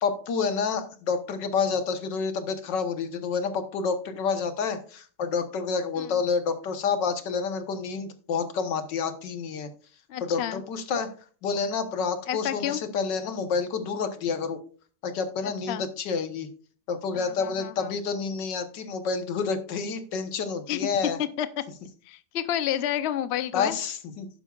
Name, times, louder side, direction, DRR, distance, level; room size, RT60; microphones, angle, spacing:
voice 1, 0.0-9.7 10.2-11.1 11.4-14.6 15.0-16.5 16.9-21.2 23.5-24.4, left 5 dB, 85° left, 9 dB, 1.8 m, -29 dB
voice 2, 10.1-10.6 12.3-12.8 15.7-15.8 17.1-17.9 20.7-20.8 21.4-21.5 22.1-23.7, left 11 dB, 55° left, 12 dB, 0.7 m, -30 dB
11.5 x 9.7 x 2.4 m, 0.41 s
omnidirectional pair, 1.9 m